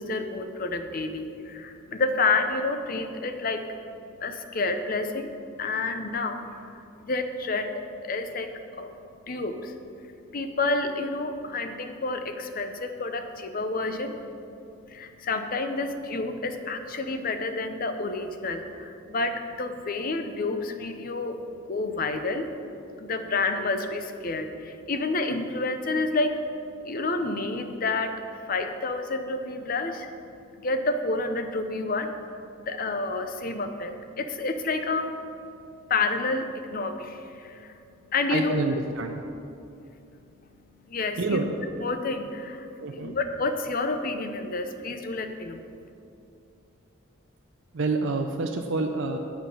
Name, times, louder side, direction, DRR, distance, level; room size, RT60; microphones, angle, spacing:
voice 1, 0.0-9.0 9.3-14.4 14.8-30.1 30.4-32.2 32.6-35.2 35.9-37.8 38.1-38.6 40.9-41.4 41.8-45.6, left 3 dB, 45° left, 7 dB, 0.6 m, -30 dB
voice 2, 38.3-39.2 41.2-41.5 42.8-43.1 47.7-49.2, right 3 dB, 65° right, 3 dB, 0.5 m, -27 dB
8.7 x 7.4 x 5.6 m, 2.6 s
head